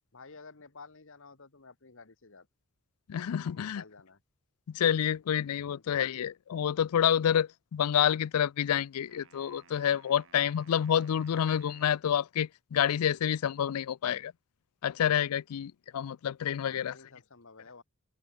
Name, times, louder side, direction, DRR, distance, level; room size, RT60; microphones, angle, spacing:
voice 1, 0.1-2.5 3.5-4.2 5.7-6.1 16.6-17.8, left 4 dB, 60° left, 1.6 m, -52 dB
voice 2, 3.1-3.8 4.7-14.3 14.8-16.9, left 9 dB, 85° left, 0.4 m, -28 dB
sound 1, 9.1-12.1, right 5 dB, 60° right, 7.3 m, -59 dB
open air
head